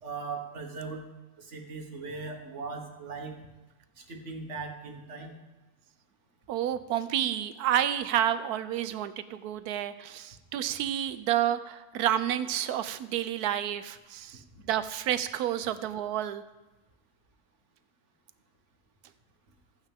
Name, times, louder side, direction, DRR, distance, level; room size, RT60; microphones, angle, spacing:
voice 1, 0.0-1.0 1.4-3.3 4.0-5.3 14.5-14.6, right 4 dB, 50° right, 3 dB, 1.7 m, -39 dB
voice 2, 6.5-14.4 14.7-16.4, right 11 dB, 80° right, 13 dB, 1.1 m, -30 dB
14.5 x 8.9 x 3.6 m, 1.1 s
omnidirectional pair, 1.6 m